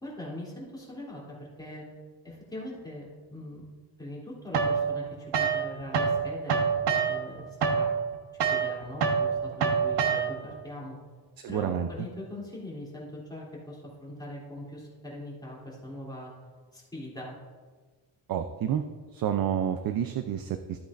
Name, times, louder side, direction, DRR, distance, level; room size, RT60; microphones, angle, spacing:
voice 1, 0.0-1.9 2.2-3.6 4.0-6.6 7.0-7.9 8.3-11.0 11.5-16.3 16.7-17.4, left 1 dB, 10° left, -6 dB, 3.0 m, -41 dB
sound 1, 4.5-6.2 6.5-10.6, right 6 dB, 75° right, 1.2 m, -26 dB
voice 2, 11.4-11.9 18.3-18.8 19.1-20.8, right 9 dB, 55° right, 8 dB, 0.5 m, -29 dB
13.5 x 8.3 x 2.5 m, 1.4 s
wide cardioid pair, 165°, 42 cm